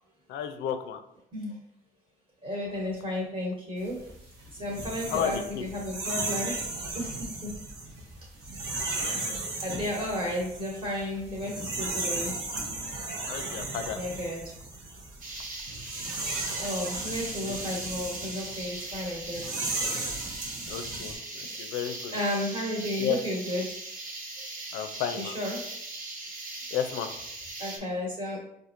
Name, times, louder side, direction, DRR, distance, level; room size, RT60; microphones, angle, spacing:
voice 1, 0.3-1.0 5.1-5.7 13.3-14.0 17.4-17.5 20.7-22.1 23.0-23.2 24.7-25.4 26.7-27.1, left 9 dB, 80° left, 8 dB, 0.4 m, -32 dB
voice 2, 2.4-4.0 4.5-6.6 6.9-7.5 8.7-9.3 9.6-12.3 13.9-14.4 16.6-19.5 21.4-21.7 22.1-23.7 25.2-25.7 27.6-28.4, left 1 dB, 35° right, -2 dB, 1.1 m, -33 dB
sound 1, 3.9-21.1, right 2 dB, 85° right, 0.9 m, -35 dB
sound 2, 15.2-27.8, right 2 dB, 50° right, 0.8 m, -40 dB
4.3 x 2.6 x 2.5 m, 0.77 s
cardioid pair, 80°, 18 cm